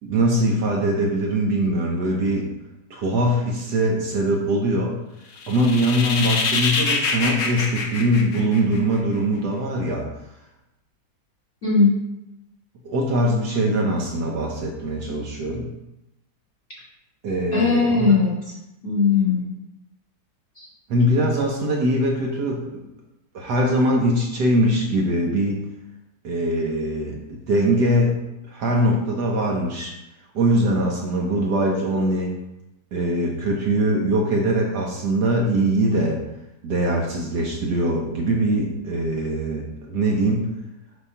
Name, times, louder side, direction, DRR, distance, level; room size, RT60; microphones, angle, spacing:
voice 1, 0.0-2.5 2.9-4.9 5.5-10.1 12.8-15.7 17.2-18.1 20.9-22.7 23.3-25.6 26.2-28.2 28.5-29.9 30.3-32.3 32.9-36.2 36.6-40.5, right 1 dB, 65° right, -1 dB, 1.4 m, -22 dB
sound 1, 5.4-9.0, left 4 dB, 60° left, 0.8 m, -25 dB
voice 2, 11.6-11.9 17.5-18.5 18.8-19.5 20.6-20.7, left 4 dB, 30° left, -6 dB, 2.1 m, -19 dB
6.3 x 2.9 x 5.5 m, 0.90 s
omnidirectional pair, 2.0 m